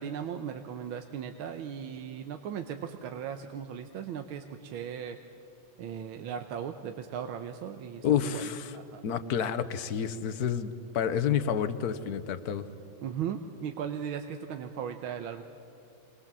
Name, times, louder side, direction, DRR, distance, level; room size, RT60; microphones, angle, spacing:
voice 1, 0.0-5.2 5.8-9.0 13.0-15.4, right 8 dB, 75° right, 6 dB, 1.7 m, -37 dB
voice 2, 8.0-8.8 9.0-12.6, left 8 dB, 55° left, 12 dB, 1.2 m, -29 dB
26.0 x 21.5 x 7.5 m, 2.7 s
omnidirectional pair, 2.3 m